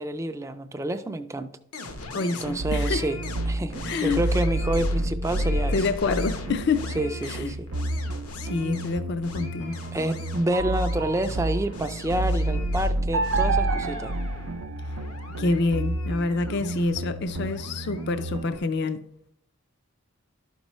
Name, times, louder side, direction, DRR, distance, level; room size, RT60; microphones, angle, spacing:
voice 1, 0.0-1.5 2.4-3.2 3.5-5.9 6.9-7.7 9.9-14.1, right 1 dB, 15° right, 0.3 m, -28 dB
sound 1, 1.7-18.7, left 3 dB, 85° left, 1.0 m, -41 dB
voice 2, 2.1-3.0 3.8-4.2 5.7-6.9 7.3-7.6 8.4-9.7 15.4-19.0, left 3 dB, 50° left, 0.4 m, -27 dB
sound 2, 2.6-18.6, right 1 dB, 85° right, 0.5 m, -30 dB
sound 3, 9.6-11.9 13.1-15.4, right 5 dB, 55° right, 0.7 m, -31 dB
12.5 x 5.3 x 3.0 m
head